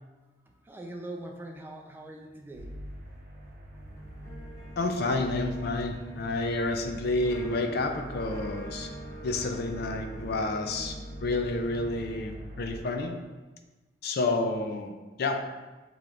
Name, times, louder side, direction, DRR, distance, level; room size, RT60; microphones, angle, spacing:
voice 1, 0.6-2.7, right 1 dB, 10° right, 1 dB, 0.4 m, -41 dB
sound 1, 2.5-12.8, equal, 55° right, 0.8 m, -43 dB
sound 2, 3.7-12.2, right 1 dB, 20° left, 0.7 m, -46 dB
voice 2, 4.8-8.9 9.2-13.2 14.0-14.9 15.2-15.4, left 2 dB, 60° left, 5 dB, 0.5 m, -30 dB
6.7 x 3.0 x 2.4 m, 1.2 s
head